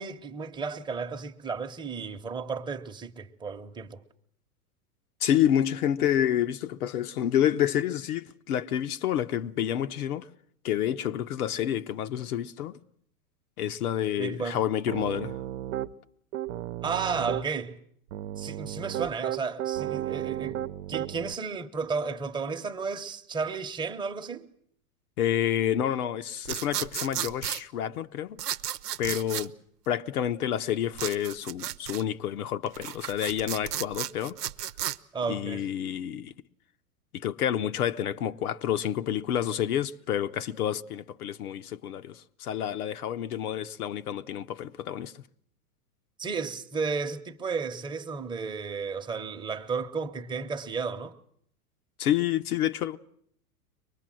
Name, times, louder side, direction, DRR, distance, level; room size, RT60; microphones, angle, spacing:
voice 1, 0.0-4.0 14.2-14.6 16.8-17.8 18.4-20.6 20.9-24.5 35.1-35.7 46.2-51.1, right 5 dB, 10° right, 0.9 m, -33 dB
voice 2, 5.2-10.3 10.6-12.8 13.6-15.4 25.2-28.4 29.0-29.5 29.9-34.4 35.3-36.3 37.1-45.2 52.0-53.0, left 10 dB, 75° left, 1.0 m, -29 dB
Piano, 14.9-15.9 16.3-17.5 18.1-21.3, right 13 dB, 55° right, 0.9 m, -33 dB
sound 1, 26.5-27.6 28.4-29.5 31.0-32.0 32.7-35.0, right 11 dB, 90° right, 0.9 m, -33 dB
23.5 x 20.0 x 7.6 m
hypercardioid pair, 120°, 45 cm